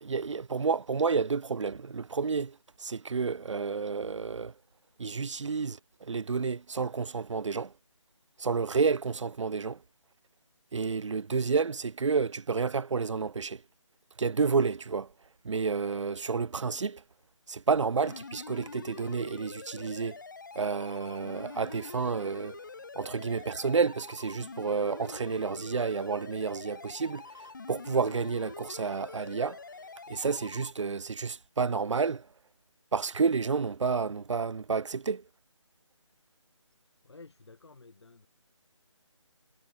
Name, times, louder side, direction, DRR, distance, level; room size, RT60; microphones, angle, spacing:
voice 1, 0.0-4.5 5.0-7.7 8.4-9.8 10.7-13.6 14.2-15.1 15.4-17.0 17.5-20.2 20.6-22.6 23.0-27.2 27.7-29.6 30.1-32.2 32.9-35.2, right 5 dB, 70° right, 0.5 m, -30 dB
sound 1, 18.0-30.7, left 4 dB, 40° left, 0.8 m, -45 dB
voice 2, 37.0-38.3, left 3 dB, 60° left, 2.2 m, -52 dB
figure-of-eight pair, 170°, 16 cm